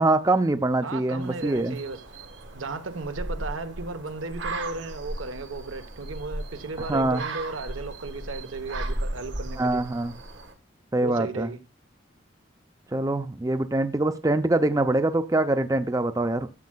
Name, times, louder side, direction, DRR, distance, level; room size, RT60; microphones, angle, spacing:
voice 1, 0.0-1.8 6.8-7.2 9.6-10.1 10.9-11.5 12.9-16.5, right 2 dB, 15° right, 0.4 m, -24 dB
voice 2, 0.8-2.0 2.5-9.8 11.0-11.6, right 3 dB, 90° right, 1.0 m, -35 dB
sound 1, 1.2-10.5, right 2 dB, 65° right, 1.3 m, -36 dB
13.5 x 7.4 x 2.2 m
head